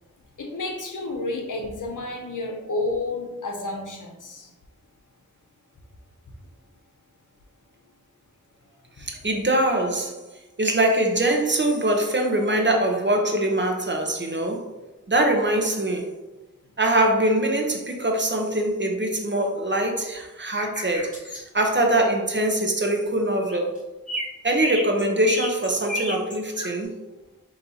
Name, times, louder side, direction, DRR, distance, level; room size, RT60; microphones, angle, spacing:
voice 1, 0.4-4.5, left 2 dB, 85° left, 2 dB, 0.7 m, -30 dB
voice 2, 9.0-10.1 10.6-14.6 15.1-16.0 16.8-23.7 24.4-26.9, right 1 dB, 40° right, 2 dB, 0.8 m, -23 dB
sound 1, 20.6-21.4 23.3-23.8 24.1-26.7, left 1 dB, 25° left, 1.4 m, -31 dB
5.2 x 2.9 x 2.8 m, 1.0 s
wide cardioid pair, 40°, 30 cm